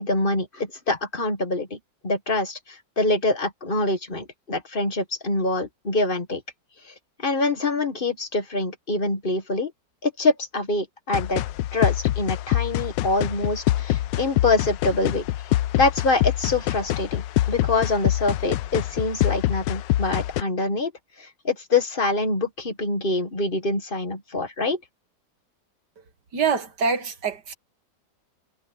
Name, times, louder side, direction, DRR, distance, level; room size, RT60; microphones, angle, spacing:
voice 1, 0.0-1.8 2.0-6.4 6.8-9.7 10.0-11.4 11.7-15.3 15.7-20.9 21.2-24.8, left 2 dB, 30° left, 1.7 m, -25 dB
sound 1, 11.1-20.4, left 15 dB, 80° left, 1.3 m, -25 dB
voice 2, 26.3-27.5, right 5 dB, 65° right, 2.4 m, -25 dB
omnidirectional pair, 2.0 m